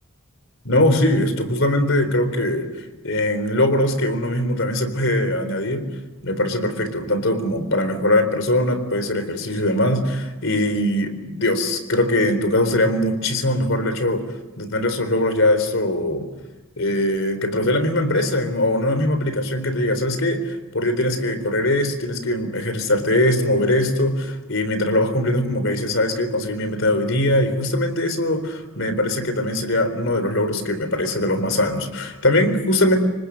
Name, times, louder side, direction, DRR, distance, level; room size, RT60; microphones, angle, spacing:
voice 1, 0.6-2.7 3.0-5.8 6.2-14.2 14.6-16.3 16.8-33.0, left 1 dB, 65° left, 9 dB, 4.1 m, -21 dB
28.5 x 24.5 x 6.6 m, 1.1 s
head